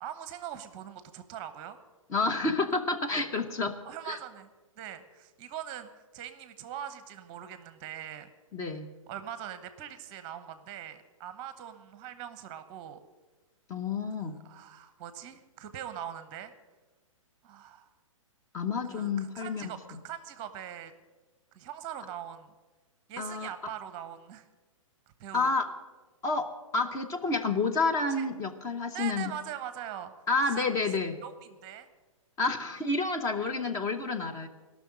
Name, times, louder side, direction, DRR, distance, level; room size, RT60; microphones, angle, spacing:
voice 1, 0.0-1.8 3.8-4.5 4.8-8.3 9.1-13.0 14.2-16.5 17.4-17.9 18.9-20.9 21.5-22.5 23.1-24.5 25.2-25.5 28.1-28.3 28.9-30.1 30.4-30.6 31.2-31.9, right 10 dB, 30° right, 11 dB, 0.9 m, -42 dB
voice 2, 2.1-3.8 4.0-4.2 8.5-8.9 13.7-14.4 18.5-19.6 23.2-23.5 25.3-25.7 26.2-29.3 30.3-31.2 32.4-34.5, left 3 dB, 20° left, 5 dB, 0.9 m, -29 dB
17.0 x 6.2 x 9.6 m, 1.2 s
figure-of-eight pair, 115°, 17 cm